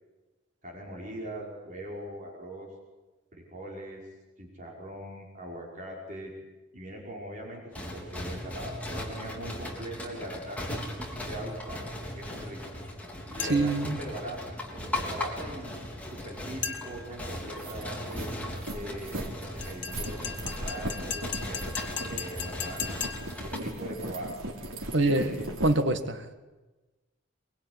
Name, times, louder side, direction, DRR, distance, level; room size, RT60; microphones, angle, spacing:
voice 1, 0.6-2.7 3.3-4.0 4.4-6.3 6.7-10.8 11.3-12.6 13.3-14.4 14.7-18.3 18.7-21.6 22.1-23.0 23.4-24.3 25.0-25.4, right 1 dB, 40° right, -1 dB, 5.6 m, -41 dB
sound 1, 7.7-23.6, left 1 dB, 5° left, 3.5 m, -38 dB
sound 2, 13.4-13.8 16.6-17.1 19.6-23.4, left 8 dB, 55° left, 2.0 m, -37 dB
voice 2, 13.5-14.0 24.9-25.4 25.6-26.3, right 2 dB, 60° right, 8 dB, 1.8 m, -25 dB
sound 3, 17.0-17.1 17.4-25.8, right 1 dB, 85° right, 3.5 m, -38 dB
23.0 x 22.5 x 9.8 m, 1.2 s
head